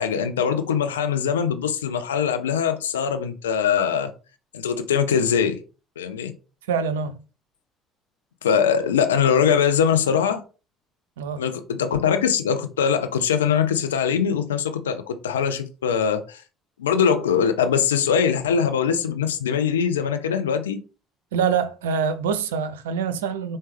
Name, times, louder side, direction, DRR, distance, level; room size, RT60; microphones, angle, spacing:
voice 1, 0.0-4.1 4.5-5.6 6.0-6.3 8.4-10.4 11.4-16.4 16.8-20.8, left 7 dB, 80° left, 0.4 m, -22 dB
voice 2, 6.7-7.2 11.2-11.4 21.3-23.6, right 6 dB, 75° right, 0.4 m, -25 dB
4.5 x 2.1 x 3.3 m
figure-of-eight pair, 50°, 0 cm